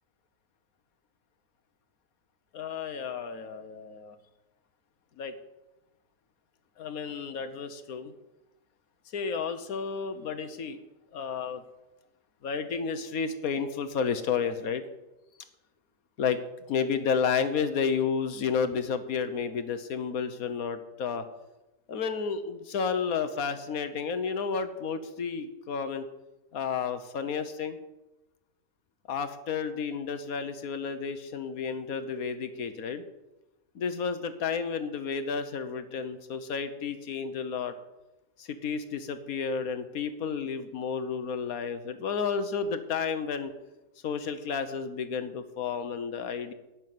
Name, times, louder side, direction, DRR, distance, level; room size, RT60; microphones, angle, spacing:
voice 1, 2.5-4.2 5.2-5.3 6.8-8.1 9.1-10.8 11.1-11.6 12.4-14.8 16.2-16.4 16.7-21.2 21.9-26.1 26.5-27.8 29.1-33.0 33.7-37.7 38.4-43.5 44.0-46.5, left 6 dB, 70° left, 10 dB, 1.5 m, -31 dB
11.5 x 6.4 x 9.3 m, 1.0 s
omnidirectional pair, 1.6 m